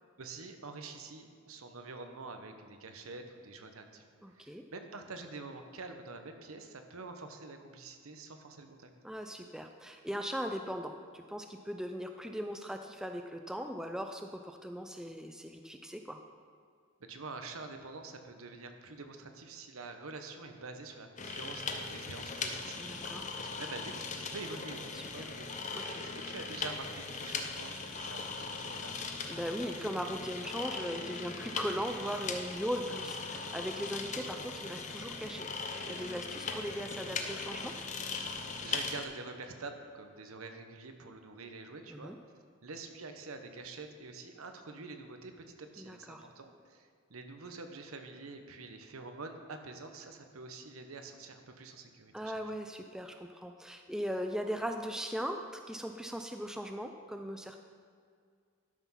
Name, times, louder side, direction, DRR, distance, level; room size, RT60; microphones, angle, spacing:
voice 1, 0.2-4.0 4.3-8.9 17.1-25.5 26.0-29.0 38.6-42.1 42.6-52.3, right 3 dB, 80° right, 6 dB, 1.0 m, -46 dB
voice 2, 4.2-4.6 9.0-16.2 22.8-23.2 24.9-25.3 25.7-26.0 29.3-35.5 35.8-37.7 41.9-42.2 45.8-46.3 52.1-55.4 55.7-57.6, equal, 5° right, 5 dB, 0.4 m, -39 dB
sound 1, 21.2-39.1, left 4 dB, 35° left, 0.7 m, -39 dB
12.0 x 6.0 x 5.7 m, 2.1 s
head